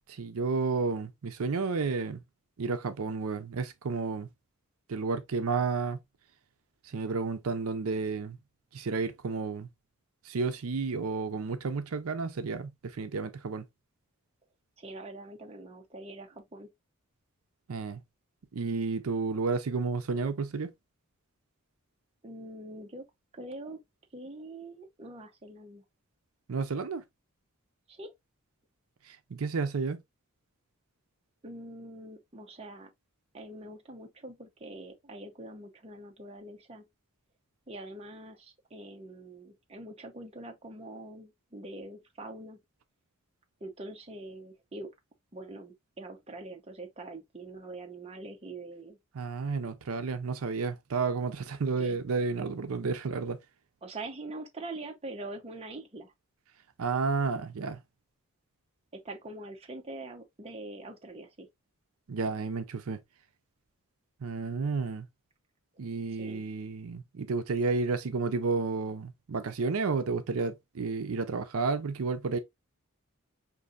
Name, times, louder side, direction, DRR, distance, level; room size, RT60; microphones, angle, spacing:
voice 1, 0.1-2.2 2.6-4.3 4.9-6.0 6.9-8.4 8.7-9.7 10.2-13.6 17.7-18.0 18.5-20.7 26.5-27.0 29.1-30.0 49.2-53.4 56.8-57.8 62.1-63.0 64.2-65.1 65.8-72.4, right 4 dB, 75° right, 0.5 m, -31 dB
voice 2, 14.8-16.7 22.2-23.1 23.3-23.8 24.1-25.8 27.9-28.1 31.4-32.9 33.3-36.9 37.7-42.6 43.6-44.9 45.3-49.0 51.7-52.0 53.8-56.1 58.9-61.5 66.1-66.4, right 2 dB, 25° right, 0.7 m, -44 dB
5.2 x 2.6 x 2.4 m
head